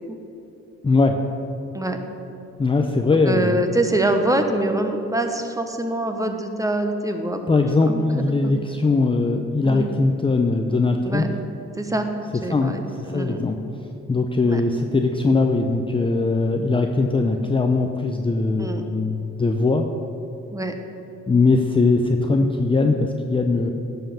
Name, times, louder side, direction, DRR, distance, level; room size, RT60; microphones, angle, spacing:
voice 1, 0.8-1.2 2.6-3.6 7.5-11.2 12.5-12.7 13.1-13.6 14.1-19.9 21.3-23.7, left 3 dB, 15° left, 4 dB, 0.6 m, -20 dB
voice 2, 3.1-7.4 7.9-8.5 9.6-9.9 11.0-11.3 11.8-12.1 12.4-13.4 14.5-14.6 18.6-18.9 20.5-20.7, right 1 dB, 10° right, 5 dB, 1.0 m, -25 dB
11.0 x 5.6 x 7.1 m, 3.0 s
cardioid pair, 90°, 30 cm